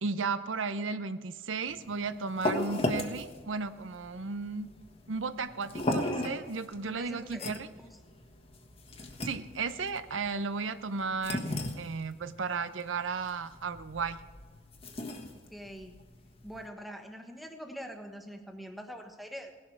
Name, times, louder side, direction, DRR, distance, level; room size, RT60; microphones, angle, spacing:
voice 1, 0.0-4.7 5.1-7.7 9.2-14.2, right 4 dB, 85° right, 12 dB, 0.7 m, -34 dB
sound 1, 1.7-16.7, left 1 dB, 30° left, 1.3 m, -37 dB
voice 2, 6.8-8.0 15.3-16.0 16.4-19.5, equal, ahead, 4 dB, 1.2 m, -44 dB
17.5 x 11.0 x 4.7 m, 1.4 s
head